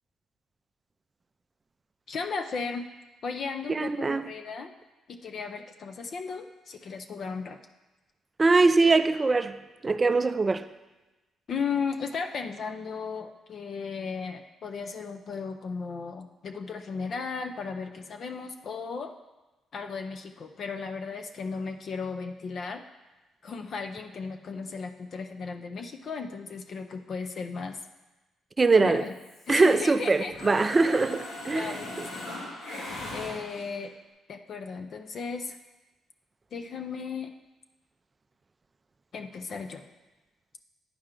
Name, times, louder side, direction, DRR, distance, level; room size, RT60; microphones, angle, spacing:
voice 1, 2.1-2.9 3.2-4.7 5.1-7.6 11.5-19.1 19.7-22.8 23.4-27.8 28.8-29.2 29.5-30.3 31.5-32.4 33.1-33.9 34.3-35.6 36.5-37.3 39.1-39.9, left 5 dB, 55° left, 0.5 m, -35 dB
voice 2, 3.7-4.2 8.4-9.6 9.8-10.7 28.6-29.0 29.5-31.7, right 3 dB, 25° right, 0.4 m, -22 dB
Mechanisms, 29.1-30.0 30.3-33.9, left 2 dB, 85° left, 1.9 m, -39 dB
9.7 x 4.4 x 3.7 m
cardioid pair, 90°, 0 cm